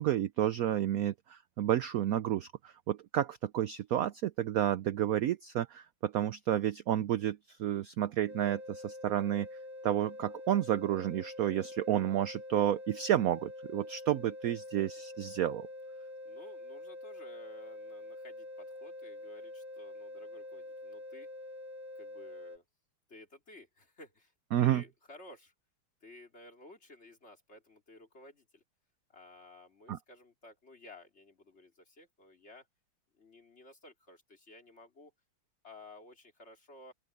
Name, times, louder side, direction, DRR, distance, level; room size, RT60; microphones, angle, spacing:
voice 1, 0.0-9.5 9.8-15.7 24.5-24.8 29.9-30.0, right 11 dB, 75° right, 0.8 m, -31 dB
sound 1, 8.3-22.6, left 1 dB, 25° right, 5.4 m, -46 dB
voice 2, 16.0-21.3 21.9-22.6 23.1-25.5 26.0-28.6 29.1-32.7 33.1-35.1 35.6-36.9, left 1 dB, 35° left, 3.0 m, -55 dB
open air
omnidirectional pair, 2.2 m